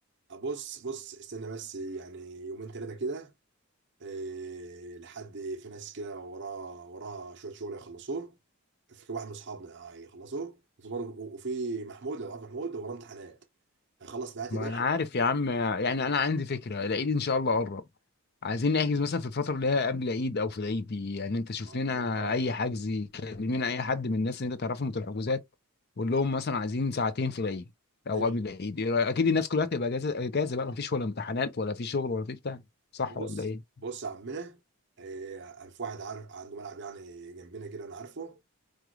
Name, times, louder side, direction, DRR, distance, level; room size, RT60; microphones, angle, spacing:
voice 1, 0.3-3.3 4.0-8.4 8.9-13.4 14.0-14.9 21.7-22.4 28.1-28.3 33.0-33.4 33.8-34.6 35.0-38.4, right 4 dB, 50° right, 0.8 m, -39 dB
voice 2, 14.5-17.8 18.4-25.4 26.0-27.7 28.1-32.6 32.9-33.6, left 4 dB, 45° left, 0.6 m, -29 dB
4.9 x 2.4 x 2.9 m
head